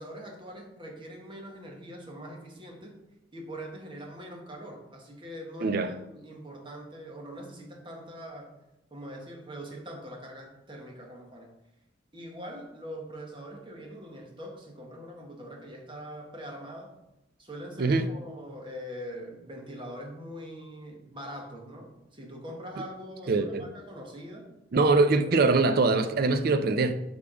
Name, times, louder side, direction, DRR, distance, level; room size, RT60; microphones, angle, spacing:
voice 1, 0.0-3.0 3.3-8.5 8.9-11.5 12.1-16.9 17.4-24.5 25.3-25.6, equal, 25° right, 1.2 m, -42 dB
voice 2, 5.6-5.9 17.8-18.1 23.3-23.7 24.7-27.0, right 3 dB, 50° right, 0.4 m, -23 dB
6.8 x 3.6 x 4.9 m
head